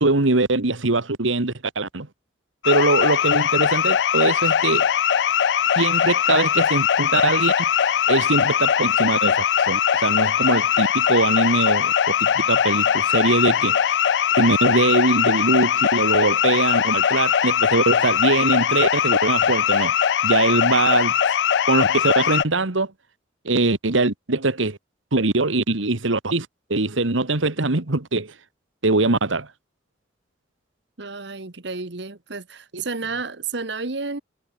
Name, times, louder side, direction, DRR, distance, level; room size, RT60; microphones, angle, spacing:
voice 1, 0.0-2.1 2.7-4.9 5.8-7.5 8.1-13.8 14.4-19.9 20.2-21.1 21.7-22.9 23.5-24.8 25.1-28.3 28.8-29.5, right 2 dB, 90° right, 1.7 m, -22 dB
sound 1, 2.6-22.5, left 8 dB, 65° left, 0.4 m, -20 dB
voice 2, 31.0-34.2, right 4 dB, 60° right, 1.4 m, -31 dB
head